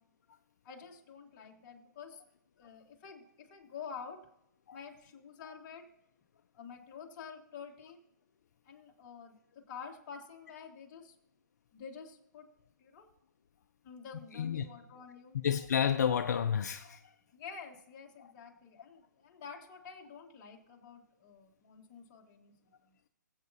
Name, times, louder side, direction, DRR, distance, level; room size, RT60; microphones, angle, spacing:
voice 1, 0.6-2.2 2.6-4.2 4.7-5.9 6.5-8.0 8.6-11.1 11.7-12.5 12.8-13.1 13.8-15.4 17.3-22.9, left 6 dB, 25° left, 1.6 m, -49 dB
voice 2, 14.1-14.7 15.4-17.1 18.2-18.3, left 8 dB, 60° left, 0.5 m, -31 dB
21.0 x 8.2 x 2.7 m
hypercardioid pair, 160°, 10 cm